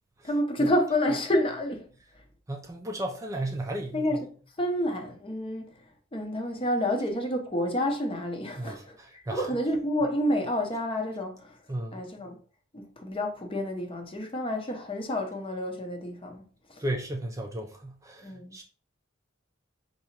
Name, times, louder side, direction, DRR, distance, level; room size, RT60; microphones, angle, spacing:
voice 1, 0.2-1.9 2.1-2.2 3.9-4.3 4.6-5.9 6.1-11.6 11.9-12.4 12.7-16.8 18.2-18.6, left 1 dB, 30° left, 0.7 m, -29 dB
voice 2, 2.5-4.1 8.6-9.5 11.7-12.0 16.8-18.6, right 1 dB, 15° right, 0.4 m, -34 dB
4.6 x 2.9 x 2.8 m
head